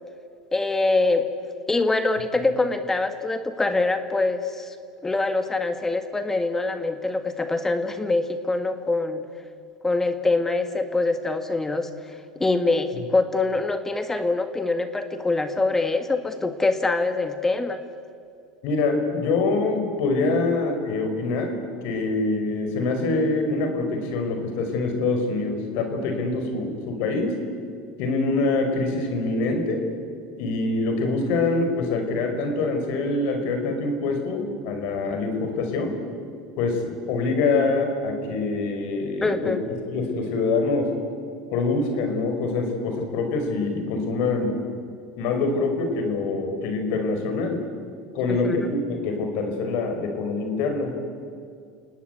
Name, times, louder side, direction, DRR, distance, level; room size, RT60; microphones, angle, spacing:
voice 1, 0.5-1.3 1.7-4.7 5.0-9.2 9.8-17.8 39.2-39.6 48.3-48.7, left 3 dB, 15° left, 8 dB, 1.8 m, -24 dB
voice 2, 18.6-27.4 28.0-29.9 30.4-36.0 36.6-39.5 39.9-40.9 41.5-44.6 45.2-47.6 48.1-50.9, left 3 dB, 65° left, 5 dB, 5.5 m, -25 dB
30.0 x 18.5 x 8.3 m, 2.3 s
hypercardioid pair, 90°, 3 cm